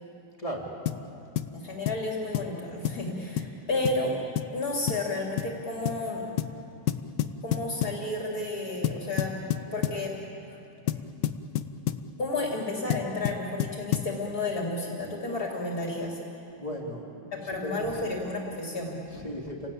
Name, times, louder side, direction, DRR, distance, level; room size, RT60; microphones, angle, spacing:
voice 1, 0.4-0.7 16.5-17.3 17.6-18.0 19.1-19.7, equal, 20° left, -1 dB, 3.2 m, -36 dB
sound 1, 0.9-1.1 1.4-1.5 1.9-2.1 2.3-2.5 2.9-3.1 3.4-3.5 3.9-4.0 4.4-4.6 4.9-5.1 5.4-5.6 5.9-6.0 6.4-6.6 6.9-8.0 8.8-10.0 10.9-12.1 12.9-14.2, left 11 dB, 85° left, 1.5 m, -29 dB
voice 2, 1.5-4.2 4.5-6.3 7.4-9.3 9.7-10.1 12.2-16.2 17.3-19.2, left 2 dB, 55° left, -1 dB, 3.8 m, -32 dB
30.0 x 18.5 x 8.7 m, 2.7 s
omnidirectional pair, 1.9 m